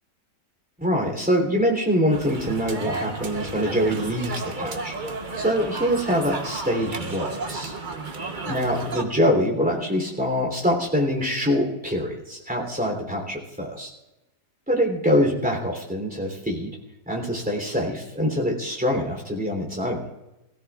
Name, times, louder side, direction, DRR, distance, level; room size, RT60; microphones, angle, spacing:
voice 1, 0.8-5.0 5.3-7.7 8.5-13.9 14.7-16.8 17.1-20.1, equal, 5° right, 0 dB, 3.3 m, -24 dB
sound 1, 2.1-9.0, right 3 dB, 35° right, 1.0 m, -33 dB
21.5 x 16.5 x 2.5 m, 0.98 s
omnidirectional pair, 1.8 m